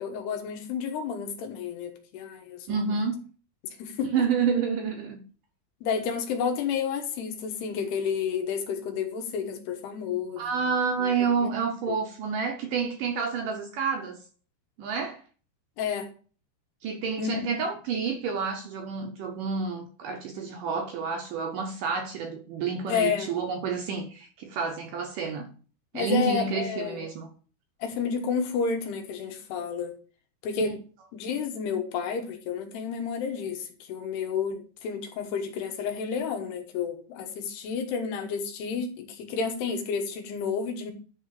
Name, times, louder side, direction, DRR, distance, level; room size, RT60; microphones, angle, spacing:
voice 1, 0.0-2.9 3.6-4.1 5.8-10.5 11.0-11.1 11.4-11.5 11.9-12.0 15.8-16.1 17.2-17.4 22.9-23.3 25.9-27.1 27.8-29.9 30.4-30.8 31.1-40.9, left 6 dB, 75° left, 3.4 m, -31 dB
voice 2, 2.7-3.2 4.0-5.2 10.4-14.2 14.8-15.2 16.8-25.5 25.9-27.3, right 5 dB, 70° right, 2.2 m, -29 dB
11.0 x 3.7 x 6.5 m
omnidirectional pair, 4.8 m